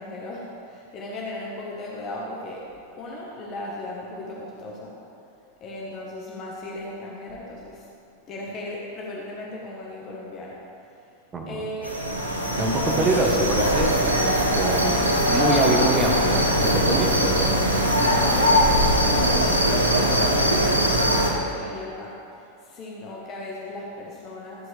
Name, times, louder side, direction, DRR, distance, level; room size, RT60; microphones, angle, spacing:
voice 1, 0.0-2.6 3.0-4.9 5.6-7.9 8.3-10.6 10.9-11.2 11.5-12.0 12.5-13.5 18.0-24.7, left 1 dB, 35° left, -3 dB, 1.4 m, -36 dB
voice 2, 11.3-11.6 12.6-12.7 13.0-17.5, right 2 dB, 20° right, 0 dB, 1.4 m, -25 dB
sound 1, 11.8-21.3, equal, 85° right, 1.1 m, -21 dB
13.5 x 7.7 x 3.4 m, 2.5 s
figure-of-eight pair, 90°, 0 cm